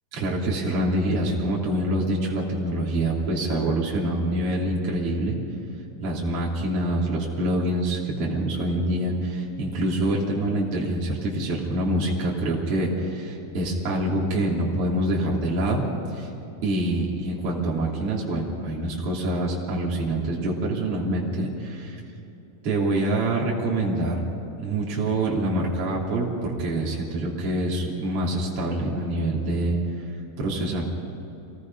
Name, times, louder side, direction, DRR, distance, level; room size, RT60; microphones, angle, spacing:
voice 1, 0.1-5.4 6.0-16.3 16.6-22.0 22.6-24.2 24.6-30.0 30.4-30.8, right 1 dB, 40° right, -4 dB, 3.7 m, -26 dB
26.5 x 18.0 x 5.4 m, 3.0 s
omnidirectional pair, 4.2 m